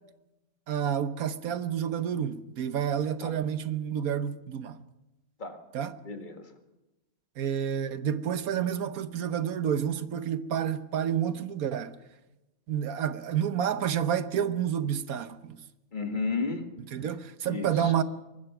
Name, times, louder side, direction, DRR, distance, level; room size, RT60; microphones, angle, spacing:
voice 1, 0.7-4.8 5.7-5.9 7.4-12.0 12.7-15.6 16.9-18.0, right 9 dB, 80° right, 1.4 m, -29 dB
voice 2, 6.0-6.6 15.9-16.7 17.5-17.9, left 4 dB, 35° left, 1.9 m, -33 dB
24.0 x 20.0 x 5.9 m
omnidirectional pair, 1.5 m